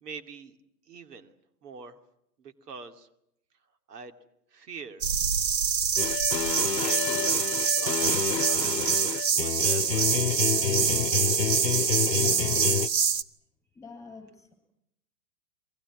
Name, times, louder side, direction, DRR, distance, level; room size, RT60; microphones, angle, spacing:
voice 1, 0.0-0.6 0.9-1.3 1.6-2.0 2.4-3.1 3.9-4.2 4.5-5.1 6.7-7.0 7.5-8.0 8.5-10.1, right 5 dB, 70° right, 8 dB, 2.7 m, -43 dB
sound 1, 5.0-13.2, right 7 dB, 85° right, 1.3 m, -26 dB
sound 2, 6.0-12.9, left 9 dB, 90° left, 0.9 m, -29 dB
voice 2, 12.2-12.8 13.7-14.5, left 4 dB, 5° left, 6 dB, 8.0 m, -47 dB
30.0 x 23.0 x 6.2 m, 0.80 s
hypercardioid pair, 120°, 49 cm